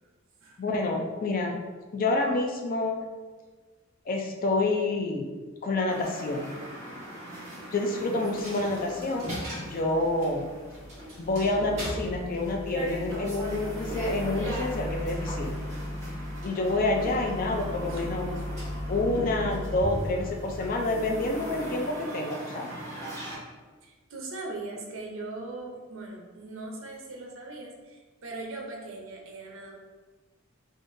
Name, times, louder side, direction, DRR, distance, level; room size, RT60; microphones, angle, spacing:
voice 1, 0.6-1.5 1.9-3.0 4.1-5.3 5.6-6.6 7.7-9.3 9.6-10.5 11.2-15.6 16.4-18.3 18.9-22.7, left 2 dB, 40° left, 1 dB, 0.4 m, -28 dB
sound 1, 5.9-23.3, equal, 15° left, 1.2 m, -40 dB
Coin (dropping), 8.2-22.0, left 1 dB, 35° right, 1.4 m, -37 dB
voice 2, 17.0-17.5 17.9-18.1 18.4-18.5 23.8-29.8, right 2 dB, 70° right, 0 dB, 0.6 m, -40 dB
3.6 x 2.6 x 2.5 m, 1.3 s
head